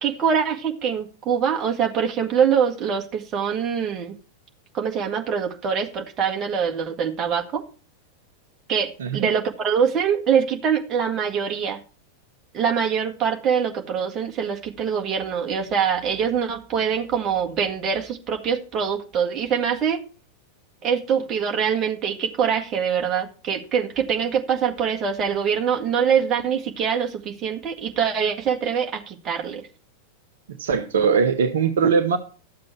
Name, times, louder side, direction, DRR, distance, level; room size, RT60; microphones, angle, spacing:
voice 1, 0.0-4.2 4.7-7.6 8.7-11.8 12.5-20.0 20.8-29.6, right 7 dB, 30° right, 1.9 m, -24 dB
voice 2, 30.6-32.2, right 6 dB, 60° right, 1.1 m, -20 dB
13.0 x 7.6 x 4.5 m
figure-of-eight pair, 90°, 0 cm